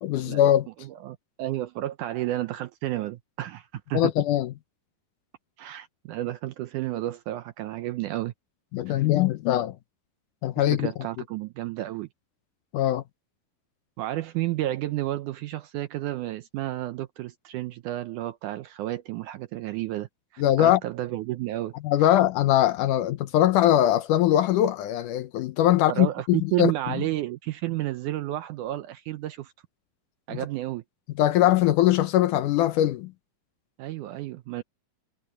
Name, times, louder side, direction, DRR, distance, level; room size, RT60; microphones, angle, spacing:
voice 1, 0.0-0.7 3.9-4.5 8.7-9.8 10.4-10.9 12.7-13.0 20.4-20.8 21.8-26.7 31.2-33.1, left 12 dB, 75° left, 2.1 m, -21 dB
voice 2, 0.8-4.2 5.6-8.3 8.9-9.1 10.6-12.1 14.0-21.7 22.0-22.1 25.9-29.5 30.3-30.8 33.8-34.6, right 15 dB, 80° right, 1.9 m, -31 dB
omnidirectional pair, 4.2 m